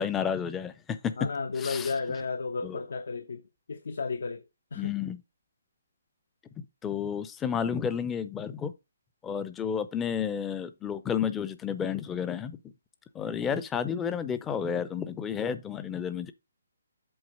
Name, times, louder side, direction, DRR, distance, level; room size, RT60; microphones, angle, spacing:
voice 1, 0.0-1.1 1.6-1.9 2.6-2.8 4.8-5.2 6.8-8.7 9.2-12.6 13.1-16.3, left 7 dB, 10° left, 0.5 m, -31 dB
voice 2, 1.2-3.4 3.7-4.4 4.7-4.9, left 4 dB, 70° left, 0.9 m, -33 dB
7.9 x 4.0 x 5.4 m
hypercardioid pair, 170°, 0 cm